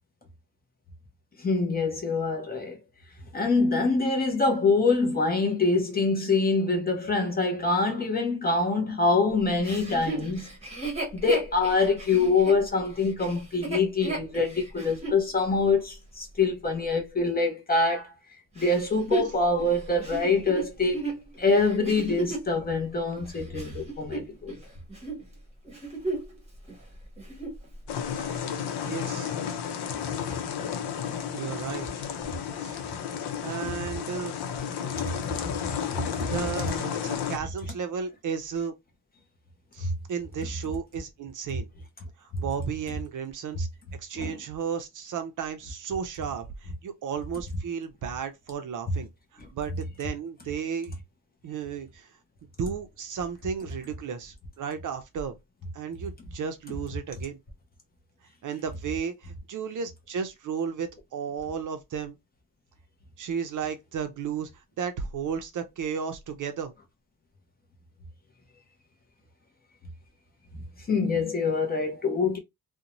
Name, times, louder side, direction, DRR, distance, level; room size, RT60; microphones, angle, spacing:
voice 1, 1.4-2.8 3.3-10.5 11.1-18.1 18.6-21.1 21.4-24.5 35.0-35.1 35.6-36.3 39.8-39.9 44.1-44.4 70.9-72.4, left 3 dB, 25° left, 0.6 m, -25 dB
Chuckle chortle, 9.6-15.2 15.8-15.9 18.6-22.5 23.2-24.6 24.9-25.2 25.7-26.4 26.7-26.8 27.2-27.7 28.3-28.4, right 2 dB, 15° right, 0.9 m, -34 dB
sound 1, 27.9-37.4, left 8 dB, 85° left, 0.6 m, -32 dB
voice 2, 28.8-29.4 31.3-31.9 32.6-32.8 33.4-34.3 36.2-38.8 39.7-41.7 42.2-43.7 44.0-49.1 49.5-50.9 51.4-52.1 52.6-55.4 55.7-57.4 58.4-62.2 63.2-64.5 64.8-66.7, right 7 dB, 55° right, 0.5 m, -34 dB
2.6 x 2.1 x 2.9 m
wide cardioid pair, 175°, 38 cm